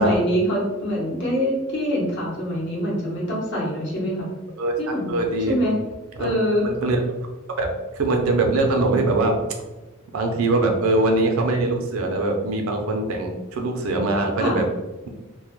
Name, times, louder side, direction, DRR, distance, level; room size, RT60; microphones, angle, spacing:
voice 1, 0.0-4.3 4.8-5.2 5.5-5.8 6.2-6.7 14.4-14.6, equal, 55° left, -4 dB, 0.8 m, -24 dB
voice 2, 4.6-5.5 6.2-6.3 6.6-7.0 7.6-7.7 7.9-9.4 10.1-14.7, right 2 dB, 75° right, 3 dB, 0.4 m, -22 dB
2.2 x 2.0 x 2.9 m, 1.1 s
head